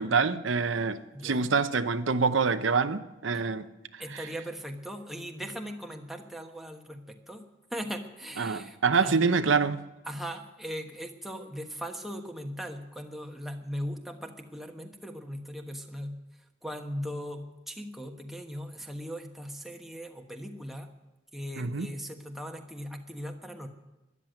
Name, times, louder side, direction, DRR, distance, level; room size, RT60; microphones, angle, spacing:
voice 1, 0.0-3.7 3.9-4.2 8.4-9.8 21.6-21.9, right 5 dB, 85° right, 0.8 m, -26 dB
voice 2, 1.1-1.6 4.0-9.2 10.1-16.2 16.6-20.9 21.3-23.7, equal, ahead, 1.2 m, -39 dB
13.0 x 11.0 x 9.1 m
head